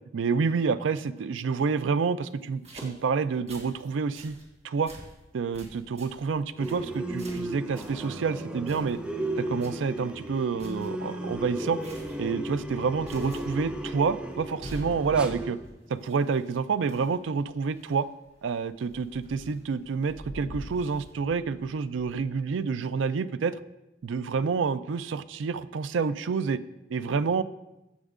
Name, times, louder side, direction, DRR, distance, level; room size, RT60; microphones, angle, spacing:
voice 1, 0.1-4.4 4.6-4.9 5.3-9.0 9.4-11.8 12.2-15.6 15.9-18.1 18.4-23.6 24.0-26.6 26.9-27.4, right 5 dB, 90° right, 14 dB, 0.4 m, -28 dB
sound 1, 2.3-3.9 4.1-4.5 4.8-5.2 5.5-8.1 8.7-9.2 9.5-9.9 10.2-10.3 10.6-10.9 11.7-12.2 12.5-12.8 13.0-13.7 14.0-14.1 14.6-16.6 16.9-18.0 18.8-19.9 20.6-21.1, right 1 dB, 35° right, 1.7 m, -50 dB
sound 2, 6.6-15.5, right 1 dB, 5° right, 0.6 m, -35 dB
Thunder / Rain, 12.2-12.3 12.6-16.7 17.4-17.9 18.3-18.4 18.7-22.4, equal, 70° left, 2.1 m, -45 dB
14.5 x 6.2 x 2.5 m, 0.96 s
head